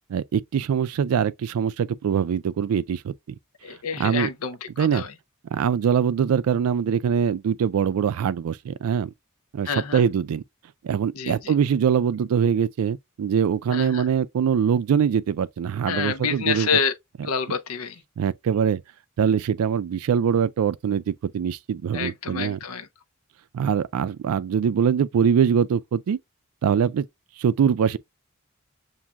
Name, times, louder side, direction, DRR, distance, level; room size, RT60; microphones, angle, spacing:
voice 1, 0.1-3.1 4.0-4.3 4.8-5.0 5.5-9.1 9.5-10.4 10.8-16.7 18.2-18.8 19.2-22.6 23.5-26.2 26.6-27.0 27.4-28.0, right 7 dB, 90° right, 0.3 m, -23 dB
voice 2, 3.6-5.1 9.6-10.0 11.1-11.5 13.7-14.1 15.9-16.9 17.2-18.0 21.9-22.9, left 6 dB, 85° left, 0.6 m, -28 dB
7.2 x 2.6 x 2.2 m
head